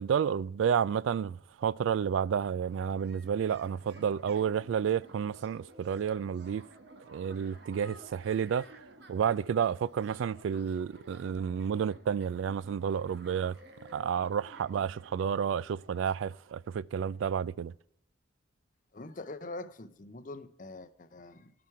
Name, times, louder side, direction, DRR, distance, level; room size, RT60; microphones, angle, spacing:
voice 1, 0.0-6.6 7.1-8.7 9.1-13.6 13.9-17.7, right 7 dB, 75° right, 0.3 m, -30 dB
sound 1, 2.5-17.1, right 1 dB, 55° right, 1.5 m, -54 dB
voice 2, 18.9-21.5, left 2 dB, 40° left, 0.6 m, -44 dB
16.0 x 6.0 x 4.5 m
head